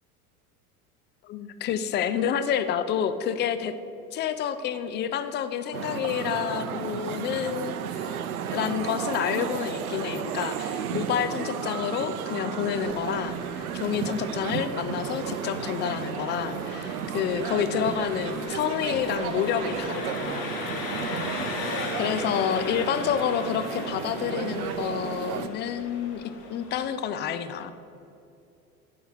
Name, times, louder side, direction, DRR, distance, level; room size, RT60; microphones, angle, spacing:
voice 1, 1.2-3.7 4.1-8.2 8.5-20.5 22.0-27.7, left 8 dB, 25° left, 11 dB, 0.4 m, -29 dB
sound 1, 5.7-25.5, right 8 dB, 70° right, 0.6 m, -33 dB
Engine, 12.8-26.9, left 3 dB, 45° left, 1.8 m, -38 dB
10.0 x 3.7 x 6.2 m, 2.7 s
figure-of-eight pair, 75°, 45 cm